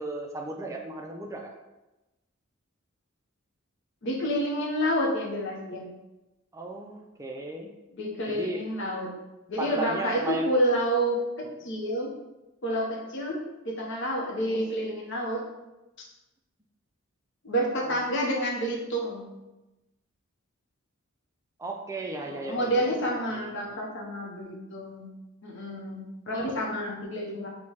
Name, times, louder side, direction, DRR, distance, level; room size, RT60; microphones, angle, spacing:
voice 1, 0.0-1.5 6.5-7.7 8.3-8.6 9.6-10.5 17.9-18.0 21.6-23.7, right 2 dB, 15° right, 2 dB, 0.3 m, -36 dB
voice 2, 4.0-5.9 7.9-9.1 9.5-11.2 11.6-12.1 12.6-13.4 13.6-15.4 17.4-19.3 22.2-25.1 25.4-27.5, equal, 60° left, -2 dB, 0.7 m, -29 dB
4.7 x 2.1 x 2.9 m, 1.0 s
head